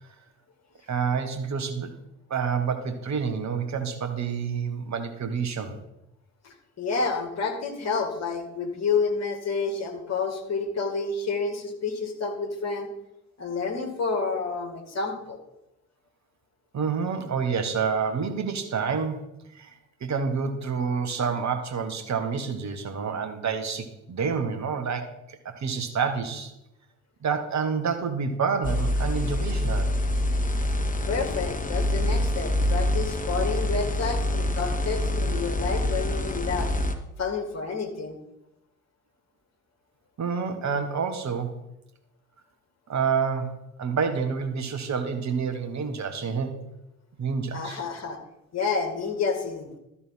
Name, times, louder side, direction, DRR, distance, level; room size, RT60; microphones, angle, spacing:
voice 1, 0.9-1.9 2.3-5.8 16.7-19.3 19.5-19.7 20.0-26.5 27.2-29.9 40.2-41.5 42.9-43.5 43.8-46.6 47.2-47.8, right 6 dB, 40° right, 7 dB, 1.4 m, -28 dB
voice 2, 6.4-12.9 13.4-15.4 31.1-36.7 37.2-38.2 47.5-48.2 48.5-49.8, left 4 dB, 35° left, 5 dB, 1.9 m, -29 dB
sound 1, 28.6-36.9, left 1 dB, 20° left, 1.1 m, -26 dB
12.5 x 4.2 x 5.7 m, 0.88 s
hypercardioid pair, 50°, 43 cm